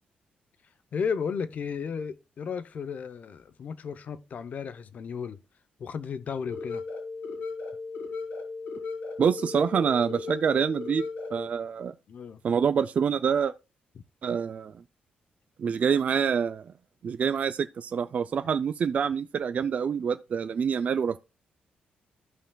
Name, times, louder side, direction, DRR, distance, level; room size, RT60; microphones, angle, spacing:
voice 1, 0.9-5.4 5.8-6.8 12.1-12.4 14.0-14.1, left 6 dB, 50° left, 0.7 m, -34 dB
sound 1, 6.5-11.5, left 4 dB, 80° left, 3.6 m, -36 dB
voice 2, 9.2-11.0 11.3-11.9 12.4-13.5 14.2-14.7 15.6-16.7 17.0-21.2, right 7 dB, 45° right, 0.4 m, -26 dB
14.0 x 5.6 x 2.3 m
cardioid pair, 130°, 3 cm